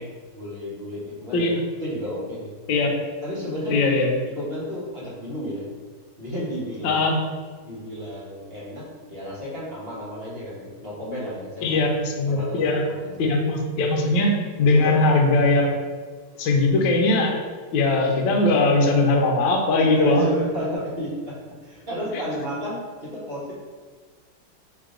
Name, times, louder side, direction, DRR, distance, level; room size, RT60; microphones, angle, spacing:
voice 1, 0.0-1.5 1.8-2.5 3.2-4.0 4.3-5.7 6.2-7.0 7.6-11.8 12.3-13.1 14.6-15.0 19.8-23.5, equal, 35° right, -7 dB, 1.1 m, -32 dB
voice 2, 3.7-4.1 6.8-7.2 11.6-12.8 13.2-15.7 16.4-17.3 17.7-20.2, left 2 dB, 70° left, 1 dB, 1.3 m, -20 dB
4.6 x 2.9 x 3.7 m, 1.5 s
omnidirectional pair, 2.4 m